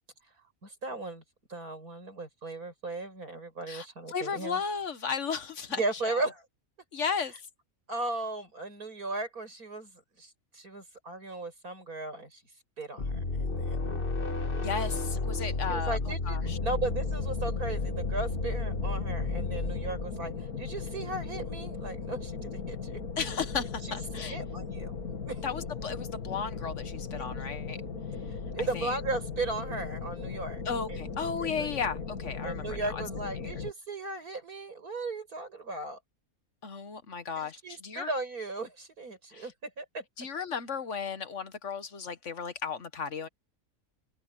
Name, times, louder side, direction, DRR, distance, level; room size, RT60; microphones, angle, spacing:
voice 1, 0.6-1.2 1.5-4.6 5.8-6.4 7.9-12.4 12.8-13.8 15.4-23.0 23.8-24.0 24.3-25.4 27.2-27.3 28.3-30.6 30.9-31.0 31.4-31.7 32.4-36.0 37.4-40.0, right 2 dB, 85° right, 6.9 m, -36 dB
voice 2, 3.7-6.2 6.9-7.3 14.6-16.0 16.3-16.6 23.2-24.4 25.4-27.8 28.7-28.9 30.6-33.0 33.4-33.5 36.6-38.1 39.3-39.5 40.2-43.3, left 6 dB, 55° left, 1.5 m, -35 dB
sound 1, 13.0-20.4, left 3 dB, 40° left, 1.7 m, -32 dB
sound 2, 16.4-33.7, left 5 dB, 90° left, 2.8 m, -38 dB
open air
omnidirectional pair, 1.5 m